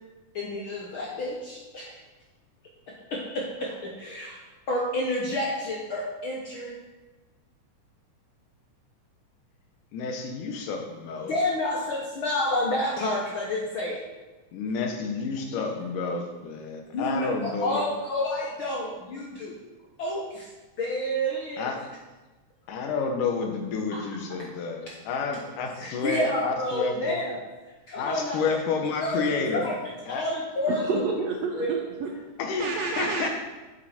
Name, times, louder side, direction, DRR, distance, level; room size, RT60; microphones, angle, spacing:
voice 1, 0.3-2.0 3.1-4.4 4.7-6.8 11.2-14.0 15.5-15.6 16.9-19.5 20.0-20.5 20.8-21.7 23.9-24.0 24.9-25.0 25.8-27.4 27.9-28.6 29.0-29.8 30.1-31.0 31.5-31.7 32.5-32.6 33.0-33.1, left 1 dB, 70° left, -2 dB, 1.2 m, -30 dB
voice 2, 9.9-11.3 14.5-17.8 21.6-21.8 22.7-27.2 28.0-29.7 30.1-30.2 32.4-33.3, left 4 dB, 85° left, 3 dB, 2.6 m, -30 dB
voice 3, 30.6-32.1 32.6-33.3, right 4 dB, 75° right, 2 dB, 1.6 m, -29 dB
8.0 x 7.7 x 4.3 m, 1.2 s
omnidirectional pair, 3.6 m